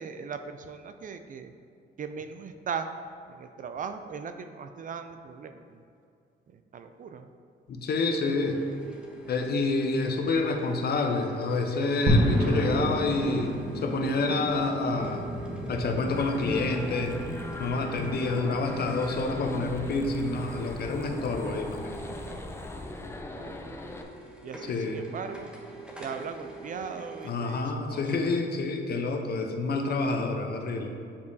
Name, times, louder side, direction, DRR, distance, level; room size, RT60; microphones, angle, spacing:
voice 1, 0.0-1.5 2.0-2.9 3.3-5.8 6.5-7.3 23.3-23.9 24.4-25.5 26.0-27.6 27.9-28.0, right 6 dB, 40° right, 8 dB, 0.4 m, -38 dB
voice 2, 7.7-8.6 9.3-15.3 15.7-17.1 17.6-22.0 24.7-25.0 27.2-30.9, left 3 dB, 55° left, 4 dB, 0.7 m, -28 dB
sound 1, 8.3-27.3, right 4 dB, 5° right, 0.9 m, -44 dB
sound 2, 12.1-22.3, equal, 65° right, 1.2 m, -32 dB
sound 3, 16.1-24.0, left 2 dB, 15° left, 0.5 m, -39 dB
6.9 x 5.1 x 2.7 m, 2.5 s
cardioid pair, 90°, 20 cm